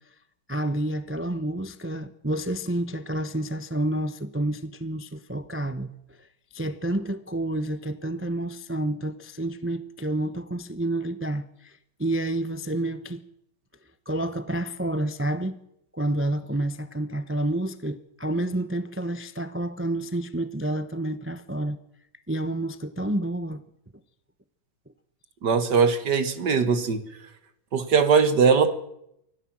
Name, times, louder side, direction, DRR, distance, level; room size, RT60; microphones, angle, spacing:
voice 1, 0.5-6.3 6.5-13.2 14.1-15.6 15.9-21.8 22.3-23.6, right 1 dB, 20° right, 0.3 m, -29 dB
voice 2, 25.4-27.0 27.7-28.7, right 5 dB, 55° right, 2.1 m, -20 dB
24.5 x 16.5 x 7.6 m
omnidirectional pair, 2.2 m